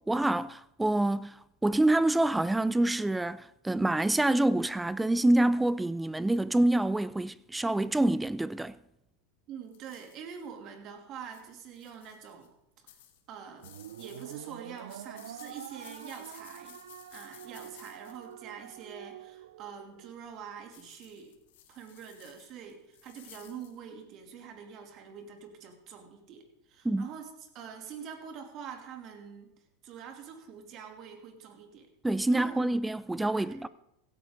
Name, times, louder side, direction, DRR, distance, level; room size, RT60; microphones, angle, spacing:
voice 1, 0.1-8.8 26.8-27.1 32.0-33.7, right 1 dB, 10° right, 0.4 m, -26 dB
voice 2, 9.5-12.5 13.3-16.8 17.1-21.4 21.7-29.5 29.8-31.9 32.3-32.6 33.3-33.6, right 7 dB, 45° right, 2.8 m, -45 dB
sound 1, 9.7-10.4 11.2-12.5 12.9-18.8 20.7-23.8, left 11 dB, 75° left, 2.1 m, -55 dB
sound 2, 13.6-20.2, right 11 dB, 80° right, 0.4 m, -46 dB
16.5 x 13.5 x 3.8 m
hypercardioid pair, 105°, 0 cm